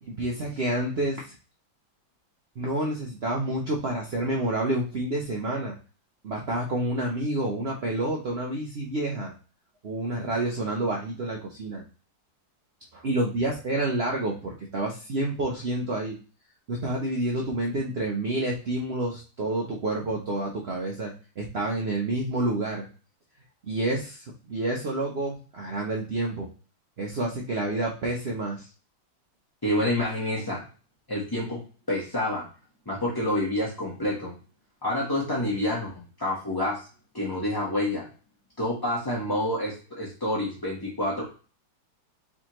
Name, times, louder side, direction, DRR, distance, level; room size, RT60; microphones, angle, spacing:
voice 1, 0.1-1.3 2.6-5.8 6.2-9.3 9.8-11.8 12.9-16.2 16.7-22.9 23.7-26.5 27.0-28.7, right 2 dB, 65° right, -1 dB, 0.6 m, -29 dB
voice 2, 29.6-30.6 31.1-31.6 31.9-32.4 32.9-34.3 34.8-36.8 37.1-38.1 38.6-41.2, left 1 dB, 20° left, -5 dB, 0.6 m, -28 dB
4.4 x 3.5 x 3.0 m, 0.35 s
omnidirectional pair, 2.1 m